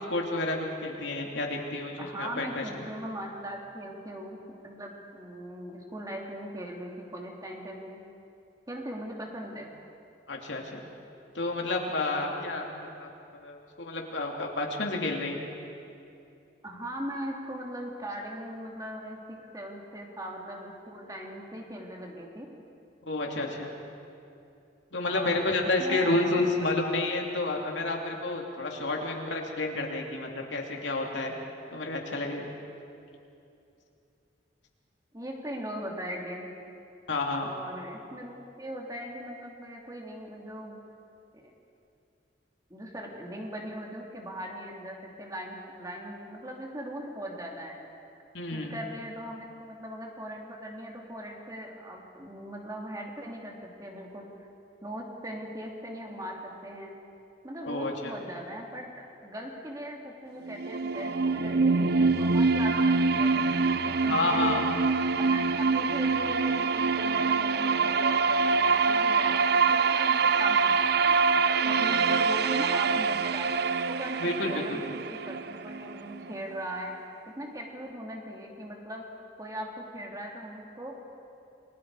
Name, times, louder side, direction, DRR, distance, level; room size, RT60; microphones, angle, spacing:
voice 1, 0.0-2.8 10.3-10.8 11.3-15.4 23.1-23.7 24.9-31.3 31.7-32.5 37.1-37.5 48.3-48.8 57.6-58.1 64.1-64.6 74.2-74.8, left 2 dB, 85° left, 0 dB, 2.9 m, -30 dB
voice 2, 2.0-8.0 8.7-9.7 12.2-12.6 16.6-22.5 24.9-25.4 25.8-27.1 35.1-36.5 37.4-40.8 41.3-41.5 42.7-47.8 48.5-54.3 54.8-56.9 57.4-64.7 65.2-71.3 71.6-73.5 73.9-76.9 77.3-79.0 79.4-81.0, equal, 20° right, 0 dB, 2.6 m, -40 dB
sound 1, 60.4-76.4, right 4 dB, 60° right, 0.6 m, -25 dB
29.0 x 21.5 x 4.8 m, 2.7 s
head